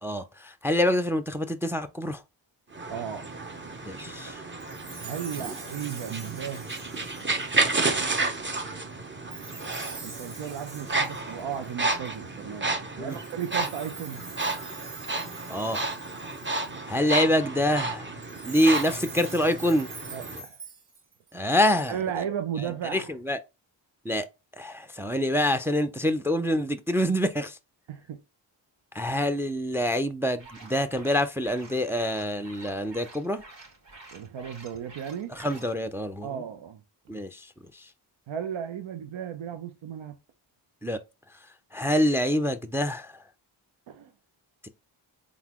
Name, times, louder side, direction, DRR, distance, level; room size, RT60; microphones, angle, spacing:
voice 1, 0.0-2.2 3.8-4.4 5.5-5.6 13.0-13.2 15.5-15.8 16.9-18.1 18.4-19.9 21.3-22.0 22.9-23.4 24.1-24.3 24.6-27.6 29.0-33.4 35.3-36.3 37.1-37.5 40.8-41.0 41.7-43.1 44.6-44.7, left 1 dB, 5° right, 0.4 m, -26 dB
sound 1, 2.7-20.4, right 3 dB, 25° right, 0.8 m, -32 dB
voice 2, 2.9-3.3 5.0-6.7 10.0-12.7 13.0-14.2 16.9-17.1 20.1-20.6 21.9-23.1 27.9-28.2 34.1-35.3 36.2-36.8 38.3-40.2 43.9-44.1, right 8 dB, 85° right, 0.7 m, -35 dB
Chime, 4.6-7.9 9.3-12.1 13.1-16.9 18.2-21.3, right 3 dB, 45° right, 1.5 m, -44 dB
sound 2, 30.4-35.7, right 3 dB, 65° right, 2.4 m, -50 dB
3.9 x 3.6 x 2.9 m
cardioid pair, 75°, 47 cm